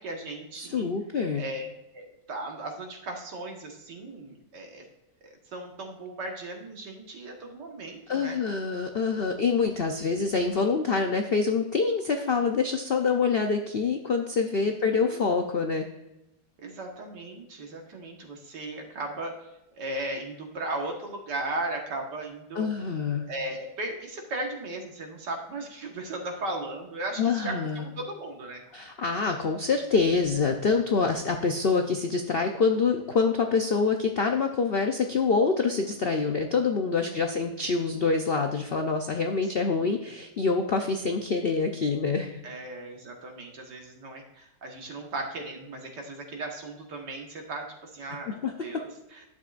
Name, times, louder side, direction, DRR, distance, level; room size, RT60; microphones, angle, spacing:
voice 1, 0.0-0.9 1.4-1.7 1.9-4.8 5.2-8.4 14.6-15.2 16.6-19.3 19.7-22.7 23.3-28.6 37.0-37.6 39.4-40.0 42.4-49.2, right 2 dB, 70° right, 2 dB, 2.1 m, -37 dB
voice 2, 0.5-1.4 8.1-15.9 22.6-23.2 27.2-27.9 28.7-42.4 48.3-48.5, left 4 dB, 85° left, 4 dB, 0.5 m, -26 dB
11.0 x 7.4 x 2.5 m, 0.91 s
omnidirectional pair, 1.9 m